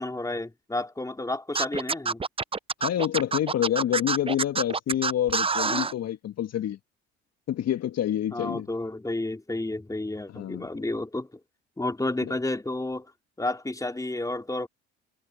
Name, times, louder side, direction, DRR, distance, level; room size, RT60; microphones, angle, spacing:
voice 1, 0.0-2.2 8.3-11.3 11.8-13.1 13.4-14.7, left 2 dB, 10° left, 3.8 m, -31 dB
Scratching (performance technique), 1.5-5.9, right 4 dB, 15° right, 0.7 m, -26 dB
voice 2, 2.8-6.8 7.5-8.7 10.3-10.7 12.2-12.3, left 11 dB, 50° left, 1.9 m, -27 dB
hypercardioid pair, 65°, 33 cm